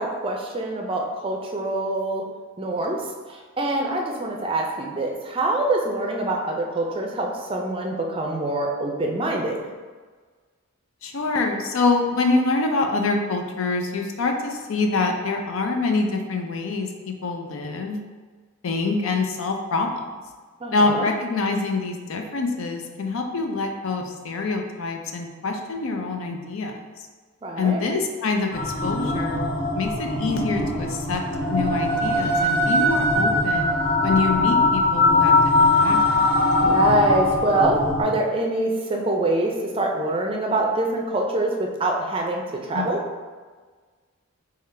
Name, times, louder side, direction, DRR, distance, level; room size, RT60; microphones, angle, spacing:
voice 1, 0.0-2.2 2.6-3.0 3.6-9.6 20.6-21.1 27.4-27.8 36.6-42.4 42.7-43.0, right 2 dB, 25° right, 1 dB, 0.4 m, -24 dB
voice 2, 11.0-18.0 18.6-20.0 20.7-26.8 27.6-29.4 29.7-31.2 31.5-33.7 34.0-35.4 35.6-36.3 42.7-43.0, left 3 dB, 70° left, 3 dB, 0.5 m, -25 dB
sound 1, 28.5-38.0, left 2 dB, 55° left, 1.4 m, -21 dB
3.7 x 3.2 x 3.2 m, 1.4 s
head